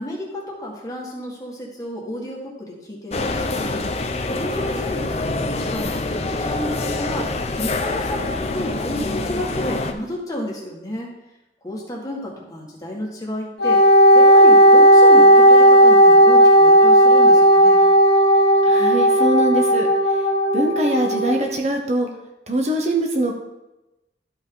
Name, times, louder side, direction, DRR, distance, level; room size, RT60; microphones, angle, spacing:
voice 1, 0.0-3.9 4.2-7.3 7.6-11.1 11.6-13.8 14.1-17.8, left 1 dB, 20° left, -3 dB, 1.9 m, -31 dB
sound 1, 3.1-9.9, left 2 dB, 35° left, 0.7 m, -25 dB
Wind instrument woodwind instrument, 13.6-21.3, equal, 80° left, 1.8 m, -12 dB
voice 2, 18.7-20.2 20.5-22.1 22.5-23.4, right 1 dB, 35° right, 2 dB, 0.9 m, -22 dB
12.5 x 5.5 x 3.9 m, 0.96 s
head